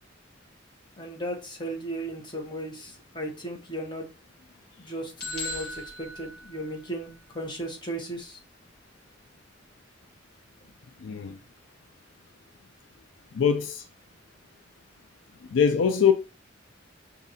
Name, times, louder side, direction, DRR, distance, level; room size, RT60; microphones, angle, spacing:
voice 1, 1.0-4.1 4.8-8.4, right 1 dB, 25° left, 1.0 m, -36 dB
sound 1, 5.2-7.1, left 2 dB, 55° left, 1.4 m, -38 dB
voice 2, 11.0-11.4 13.3-13.8 15.5-16.1, left 7 dB, 75° left, 0.4 m, -22 dB
6.2 x 2.5 x 2.7 m
head